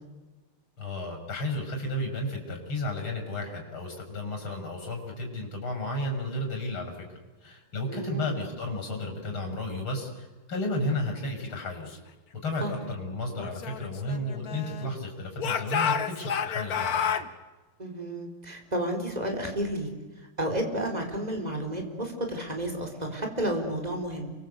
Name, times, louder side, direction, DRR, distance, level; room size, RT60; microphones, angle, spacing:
voice 1, 0.8-6.9 7.4-12.0 12.4-17.1, left 1 dB, 65° left, 3 dB, 7.0 m, -33 dB
voice 2, 7.9-8.4 12.6-12.7 17.8-19.9 20.4-24.3, right 1 dB, 15° right, 3 dB, 4.6 m, -31 dB
Speech / Shout, 13.4-14.9 15.4-17.3, left 7 dB, 50° left, 1.4 m, -30 dB
30.0 x 23.5 x 8.3 m, 1.2 s
omnidirectional pair, 2.4 m